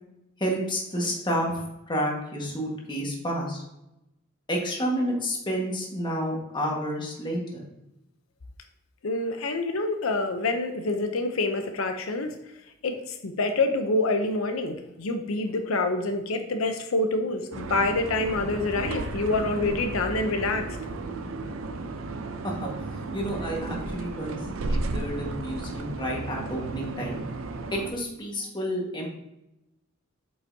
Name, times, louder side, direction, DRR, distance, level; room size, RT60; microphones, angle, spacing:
voice 1, 0.4-3.6 4.5-7.7 22.4-22.7 23.0-24.4 24.7-27.2 27.7-29.1, equal, 25° left, -1 dB, 1.5 m, -30 dB
voice 2, 9.0-12.4 12.8-20.8, left 2 dB, 85° left, 6 dB, 0.7 m, -27 dB
sound 1, 17.5-27.9, right 2 dB, 75° right, 0.6 m, -34 dB
8.0 x 5.5 x 2.7 m, 0.89 s
head